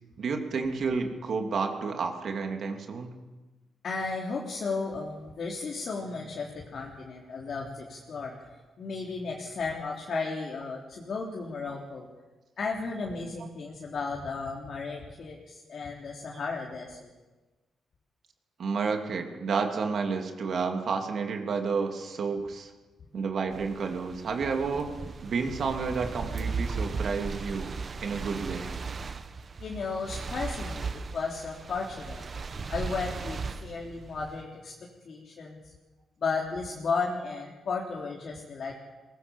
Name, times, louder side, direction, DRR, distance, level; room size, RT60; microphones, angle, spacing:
voice 1, 0.2-3.2 4.5-4.6 10.1-10.2 18.6-22.7 23.1-24.9 25.2-27.7 28.0-28.7, right 5 dB, 55° right, 3 dB, 3.0 m, -30 dB
voice 2, 3.8-8.3 8.8-12.1 12.6-17.1 29.6-32.3 32.7-34.7 35.0-35.6 36.2-38.8, left 4 dB, 50° left, -2 dB, 3.5 m, -34 dB
sound 1, 23.5-34.4, right 4 dB, 40° right, 1.1 m, -37 dB
22.5 x 20.0 x 7.3 m, 1.2 s
cardioid pair, 125°, 0 cm